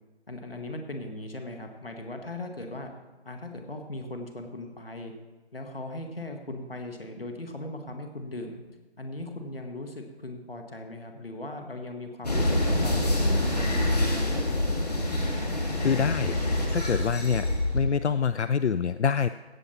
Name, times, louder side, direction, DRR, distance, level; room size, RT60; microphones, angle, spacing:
voice 1, 0.3-2.9 3.3-5.1 5.5-8.6 9.0-14.6, left 1 dB, 60° left, 4 dB, 1.8 m, -38 dB
sound 1, 12.2-17.8, left 1 dB, 35° left, 2.0 m, -26 dB
voice 2, 15.8-16.4 16.7-17.5 17.7-19.3, left 6 dB, 85° left, 13 dB, 0.5 m, -25 dB
16.0 x 7.0 x 4.4 m, 1.3 s
figure-of-eight pair, 170°, 33 cm